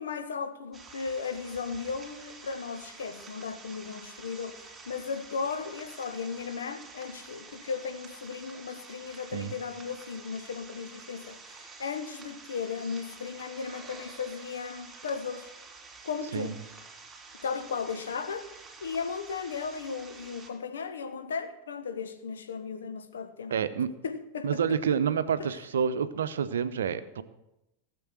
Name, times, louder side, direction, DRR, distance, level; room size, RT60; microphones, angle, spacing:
voice 1, 0.0-15.5 16.0-16.6 17.4-18.5 18.8-23.6 24.0-24.6 25.4-25.5, left 5 dB, 65° left, 1.2 m, -36 dB
sound 1, 0.7-20.5, right 4 dB, 15° right, 3.3 m, -49 dB
voice 2, 23.5-23.9 24.4-27.2, right 7 dB, 65° right, 0.7 m, -28 dB
17.0 x 7.5 x 6.2 m
figure-of-eight pair, 90°, 0 cm